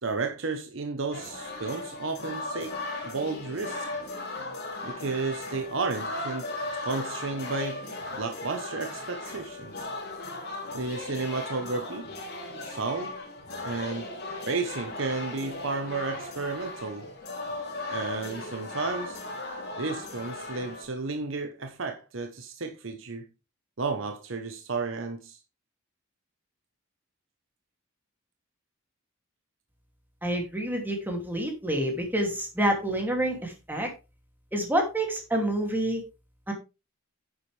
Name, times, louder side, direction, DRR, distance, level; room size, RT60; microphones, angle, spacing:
voice 1, 0.0-2.8 3.0-3.9 4.8-6.5 6.8-9.9 10.7-12.1 12.6-13.2 13.6-14.1 14.5-17.0 17.9-19.2 19.8-23.3 23.8-25.4, right 3 dB, 65° right, 1.0 m, -32 dB
sound 1, 1.1-20.8, left 2 dB, 50° left, 3.3 m, -37 dB
voice 2, 30.2-33.9 34.5-36.0 36.5-36.6, right 1 dB, 10° right, 2.6 m, -28 dB
9.7 x 7.9 x 3.4 m
head